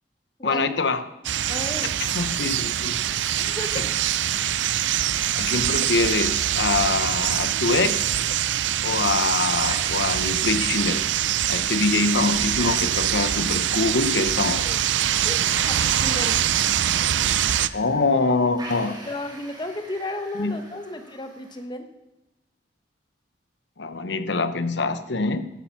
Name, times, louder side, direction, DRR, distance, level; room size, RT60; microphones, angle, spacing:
voice 1, 0.4-1.0 2.0-3.0 3.8-3.9 5.3-8.1 8.8-11.1 11.5-14.7 17.7-19.0 20.3-20.6 23.8-25.4, left 3 dB, 80° left, 11 dB, 1.0 m, -24 dB
sound 1, 1.2-17.7, right 11 dB, 90° right, 0.5 m, -24 dB
voice 2, 1.5-1.9 3.4-4.0 8.6-8.8 14.6-14.8 15.2-16.4 19.0-21.9, left 1 dB, 25° left, 7 dB, 1.1 m, -33 dB
sound 2, 9.6-21.6, right 2 dB, 25° right, 4.0 m, -42 dB
14.0 x 8.8 x 5.9 m, 0.92 s
head